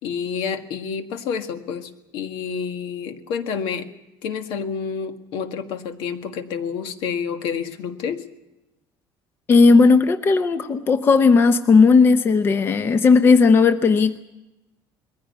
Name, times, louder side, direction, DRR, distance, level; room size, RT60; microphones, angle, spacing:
voice 1, 0.0-3.9 4.2-8.3, left 6 dB, 70° left, 7 dB, 1.7 m, -29 dB
voice 2, 9.5-14.2, left 4 dB, 25° left, 9 dB, 0.8 m, -15 dB
21.5 x 15.5 x 9.4 m, 0.97 s
cardioid pair, 170°, 9 cm